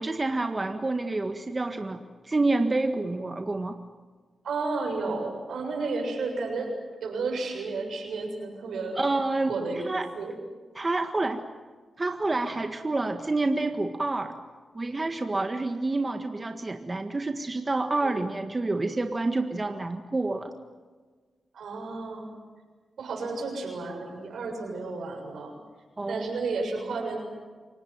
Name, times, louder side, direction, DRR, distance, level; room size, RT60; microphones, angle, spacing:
voice 1, 0.0-3.7 8.9-10.1 10.7-11.4 12.0-14.4 14.7-20.5 26.0-26.3, right 2 dB, 30° right, 5 dB, 1.8 m, -28 dB
voice 2, 4.4-6.7 7.0-9.0 9.4-9.9 10.1-10.4 18.0-18.3 21.5-22.3 23.0-25.5 26.1-27.2, right 3 dB, 85° right, 2 dB, 7.1 m, -32 dB
28.5 x 18.0 x 9.5 m, 1.5 s
cardioid pair, 60°, 0 cm